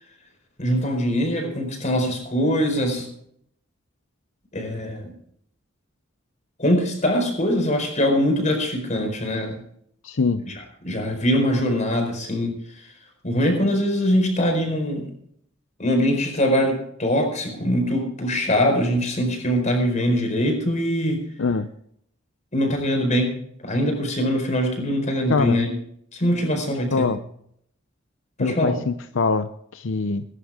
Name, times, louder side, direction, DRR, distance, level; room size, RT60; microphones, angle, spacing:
voice 1, 0.6-3.1 4.5-5.1 6.6-9.6 10.4-10.5 10.8-12.5 13.2-15.1 15.8-21.2 22.5-23.3 23.6-25.7 26.1-27.1 28.4-28.8, equal, 40° left, 3 dB, 4.6 m, -22 dB
voice 2, 10.0-10.4 21.4-21.7 25.3-25.6 26.9-27.2 28.4-30.3, left 4 dB, 70° left, 10 dB, 0.6 m, -23 dB
21.0 x 11.0 x 3.6 m, 0.69 s
head